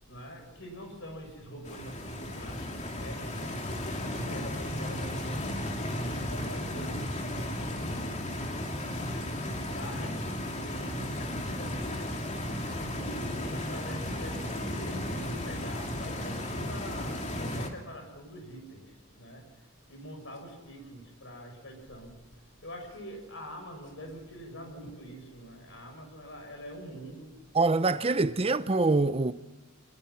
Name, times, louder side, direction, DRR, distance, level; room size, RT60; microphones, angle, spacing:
voice 1, 0.0-8.5 9.5-12.2 12.8-27.3, equal, 60° left, 6.8 m, -45 dB
Stream, 1.6-17.7, left 1 dB, 35° left, 2.8 m, -34 dB
voice 2, 27.5-29.3, right 3 dB, 30° right, 0.6 m, -25 dB
25.5 x 22.0 x 5.7 m
head